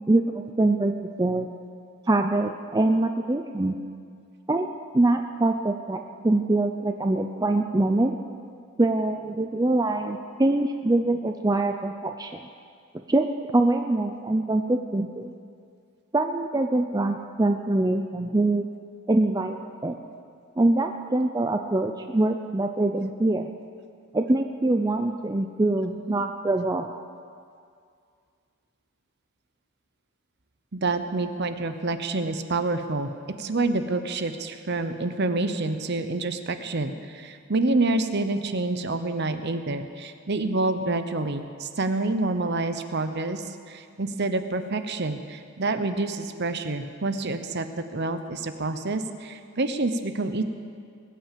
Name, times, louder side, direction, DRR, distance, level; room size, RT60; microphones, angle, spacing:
voice 1, 0.1-1.5 2.1-3.8 4.5-4.7 4.9-8.2 8.8-12.4 13.1-13.3 13.5-15.3 16.1-18.7 19.1-20.0 20.6-23.5 24.1-26.9, right 2 dB, 15° right, 5 dB, 0.4 m, -24 dB
voice 2, 30.7-33.1 33.4-50.4, right 2 dB, 50° right, 9 dB, 0.9 m, -27 dB
21.0 x 9.0 x 7.5 m, 2.3 s
head